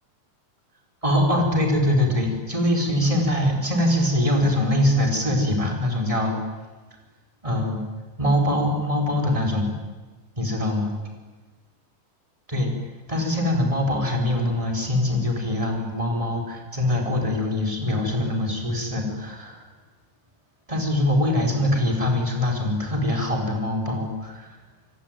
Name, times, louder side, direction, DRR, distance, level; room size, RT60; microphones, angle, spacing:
voice 1, 1.0-6.4 7.4-7.8 8.2-9.8 10.4-10.9 12.5-12.7 13.1-19.6 20.7-24.6, left 1 dB, 10° right, 2 dB, 4.9 m, -23 dB
26.0 x 23.0 x 9.3 m, 1.3 s
omnidirectional pair, 4.8 m